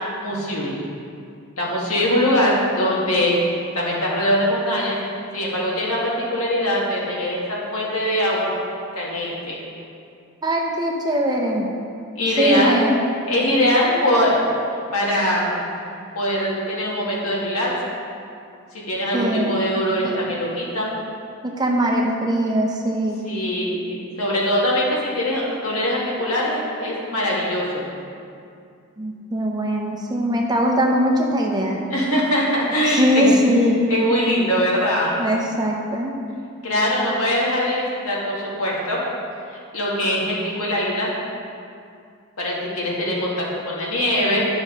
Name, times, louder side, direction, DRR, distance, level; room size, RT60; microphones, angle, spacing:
voice 1, 0.2-0.8 1.6-3.4 3.7-5.0 5.3-8.5 8.9-9.6 12.1-12.8 13.3-14.4 14.9-15.7 16.1-17.7 18.9-20.9 23.2-27.8 31.9-33.4 33.9-35.2 36.6-39.0 39.7-41.1 42.4-44.4, left 1 dB, 80° left, -5 dB, 2.0 m, -22 dB
voice 2, 10.4-11.7 12.4-13.0 19.1-19.6 20.0-20.2 21.4-23.2 29.0-31.8 32.9-33.9 35.2-36.1, equal, 20° right, 0 dB, 0.7 m, -21 dB
10.0 x 6.1 x 4.0 m, 2.4 s
head